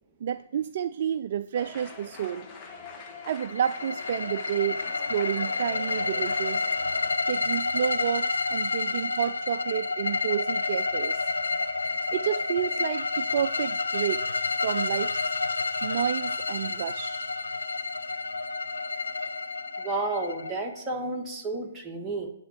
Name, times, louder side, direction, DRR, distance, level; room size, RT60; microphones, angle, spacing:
voice 1, 0.2-2.5 3.2-6.7 7.3-11.3 12.1-14.2 14.6-15.2 15.8-17.3, right 9 dB, 50° right, 12 dB, 0.3 m, -30 dB
sound 1, 1.5-7.1, left 4 dB, 25° left, 1.5 m, -44 dB
sound 2, 3.2-21.0, left 3 dB, 80° left, 0.8 m, -30 dB
voice 2, 19.8-22.3, right 2 dB, 15° right, 0 dB, 1.6 m, -31 dB
11.0 x 3.8 x 7.4 m, 0.74 s
figure-of-eight pair, 130°, 0 cm